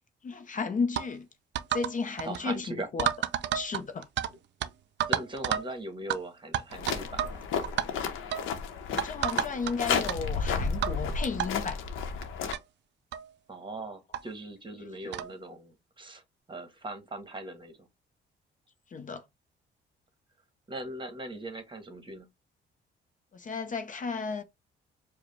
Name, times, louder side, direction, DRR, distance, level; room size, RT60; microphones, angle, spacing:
voice 1, 0.2-1.3 1.7-3.1 3.5-4.1 9.0-11.8 14.8-14.9 18.9-19.2 23.3-24.4, left 4 dB, 40° left, 0.6 m, -33 dB
sound 1, 1.0-1.1 1.6-1.9 2.2-2.4 3.0-4.3 4.6-4.7 5.0-5.7 6.1-6.2 6.5-7.4 7.6-7.9 8.3-8.5 9.0-9.7 10.1-10.2 10.8-11.0 11.4-11.5 12.2-12.3 12.5-12.6 13.1-13.3 14.1-14.2 15.1-15.3, right 11 dB, 65° right, 0.4 m, -30 dB
voice 2, 2.2-2.9 5.1-7.4 13.5-16.2 16.5-17.9 20.7-22.3, right 2 dB, 25° right, 1.1 m, -40 dB
sound 2, 6.7-12.5, left 5 dB, 90° left, 0.8 m, -32 dB
4.8 x 2.2 x 3.2 m
cardioid pair, 90°, 20 cm